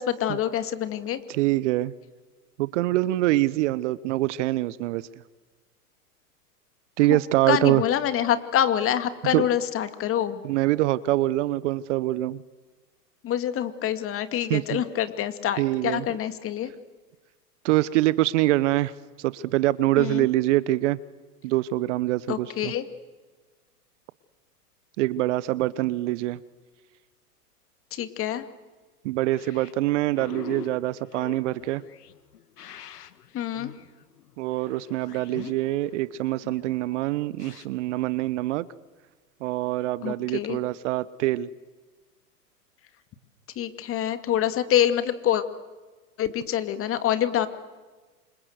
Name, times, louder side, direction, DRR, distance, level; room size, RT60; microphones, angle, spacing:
voice 1, 0.0-1.2 7.1-7.2 7.5-10.4 13.2-16.7 20.0-20.3 22.3-22.8 27.9-28.4 33.3-33.7 40.0-40.6 43.6-45.4 46.2-47.5, left 10 dB, 25° left, 11 dB, 2.3 m, -26 dB
voice 2, 1.3-1.9 2.6-5.1 7.0-7.8 9.3-9.4 10.4-12.4 14.5-14.8 15.6-16.0 17.6-18.9 19.2-21.0 21.4-22.7 25.0-26.4 29.0-31.8 34.4-38.7 39.4-41.5, right 17 dB, 50° right, 19 dB, 1.0 m, -24 dB
sound 1, 29.3-37.7, left 10 dB, 75° left, 1.7 m, -44 dB
29.0 x 26.0 x 8.0 m, 1.3 s
hypercardioid pair, 110°, 48 cm